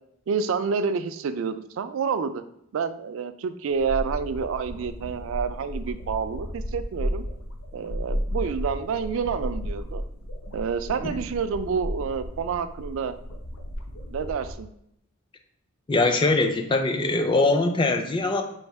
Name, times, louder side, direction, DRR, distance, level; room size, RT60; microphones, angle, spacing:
voice 1, 0.3-2.4 2.7-7.2 7.7-10.0 10.5-13.1 14.1-14.7, right 6 dB, 65° right, 12 dB, 0.3 m, -28 dB
sound 1, 3.7-14.5, equal, 75° left, 0.6 m, -34 dB
voice 2, 15.9-18.4, left 2 dB, 25° left, 5 dB, 0.3 m, -22 dB
3.2 x 2.7 x 4.5 m, 0.75 s
head